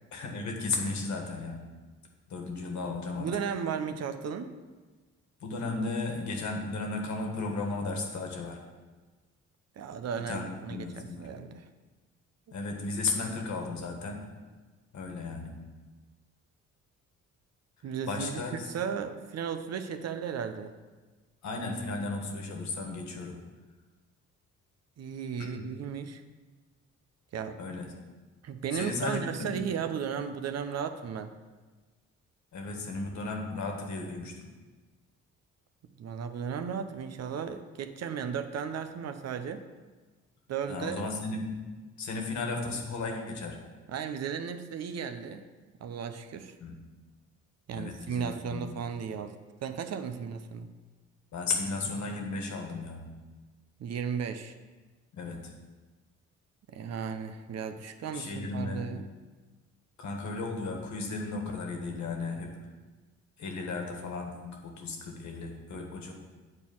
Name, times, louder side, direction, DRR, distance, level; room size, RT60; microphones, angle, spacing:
voice 1, 0.1-1.6 2.3-3.3 5.4-8.6 10.3-11.3 12.5-14.3 14.9-15.7 18.1-18.7 21.4-23.4 25.4-25.6 27.6-27.9 28.7-29.7 32.5-34.4 40.7-41.7 42.0-43.6 46.6-46.8 47.7-48.8 51.3-53.1 55.1-55.5 58.1-59.0 60.0-62.6 63.4-66.1, left 3 dB, 70° left, 2 dB, 1.6 m, -35 dB
voice 2, 3.2-4.5 9.8-11.7 17.8-18.3 18.6-20.7 25.0-26.2 27.3-27.6 28.4-31.3 36.0-39.6 40.5-41.0 43.9-45.5 45.8-46.5 47.7-50.7 53.8-54.6 56.7-59.0, right 7 dB, 60° right, 9 dB, 0.7 m, -35 dB
8.1 x 4.5 x 7.0 m, 1.3 s
cardioid pair, 90°, 30 cm